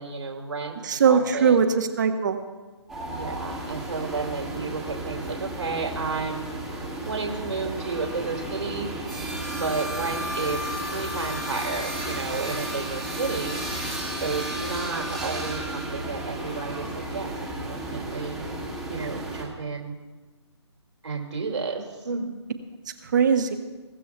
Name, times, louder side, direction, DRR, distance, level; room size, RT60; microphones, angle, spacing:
voice 1, 0.0-1.7 3.1-6.5 7.0-8.9 9.4-13.6 14.2-18.5 18.9-19.9 21.0-22.4, right 4 dB, 75° right, 1 dB, 2.3 m, -32 dB
voice 2, 0.8-2.4 23.0-23.5, right 6 dB, 40° right, 7 dB, 1.2 m, -20 dB
sound 1, 2.9-19.5, right 1 dB, ahead, 1.6 m, -33 dB
22.5 x 14.5 x 2.3 m, 1.3 s
hypercardioid pair, 160°, 15 cm